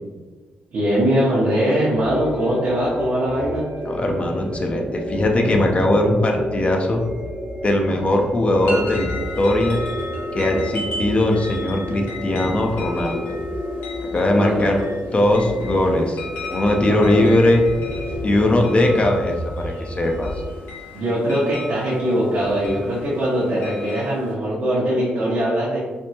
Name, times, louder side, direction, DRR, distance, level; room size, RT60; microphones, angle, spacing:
voice 1, 0.7-3.7 14.3-14.9 16.8-17.3 20.9-25.8, equal, 65° right, -8 dB, 0.8 m, -21 dB
sound 1, 1.9-20.5, equal, 35° right, 0.7 m, -31 dB
voice 2, 3.9-7.0 7.6-9.1 9.4-9.8 10.3-13.4 14.1-14.8 15.1-16.2 16.5-17.6 18.2-20.4, left 1 dB, 35° left, 2 dB, 0.4 m, -20 dB
sound 2, 8.6-24.3, left 2 dB, 90° left, 0.7 m, -36 dB
3.4 x 2.0 x 2.8 m, 1.3 s
cardioid pair, 70°, 4 cm